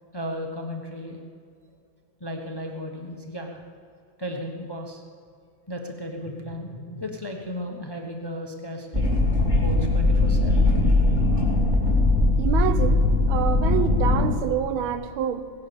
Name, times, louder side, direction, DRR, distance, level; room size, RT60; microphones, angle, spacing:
voice 1, 0.1-1.2 2.2-3.6 4.2-5.0 5.7-9.0 9.6-10.7, equal, 15° left, 3 dB, 1.0 m, -34 dB
sound 1, 8.9-14.3, left 2 dB, 20° right, 3.2 m, -20 dB
voice 2, 12.4-15.5, right 8 dB, 80° right, 11 dB, 1.7 m, -27 dB
17.5 x 11.5 x 7.1 m, 2.3 s
omnidirectional pair, 2.3 m